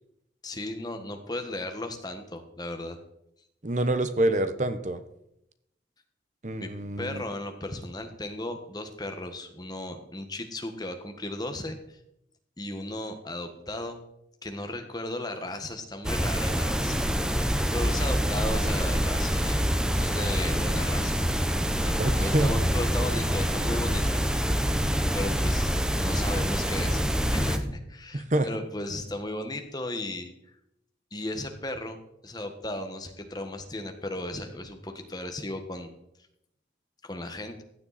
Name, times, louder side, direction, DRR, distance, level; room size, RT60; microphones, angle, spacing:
voice 1, 0.4-3.0 6.6-6.7 7.0-12.0 12.6-14.0 14.4-17.0 17.7-19.7 19.9-21.1 21.8-24.6 25.1-30.3 31.1-35.9 37.0-37.6, left 1 dB, 20° left, 6 dB, 1.4 m, -35 dB
voice 2, 3.6-5.0 6.4-7.2 22.0-22.5 28.1-28.5, right 1 dB, 40° right, 11 dB, 0.9 m, -26 dB
sound 1, 16.0-27.6, equal, 5° right, 0.8 m, -26 dB
15.5 x 10.0 x 4.2 m, 0.82 s
head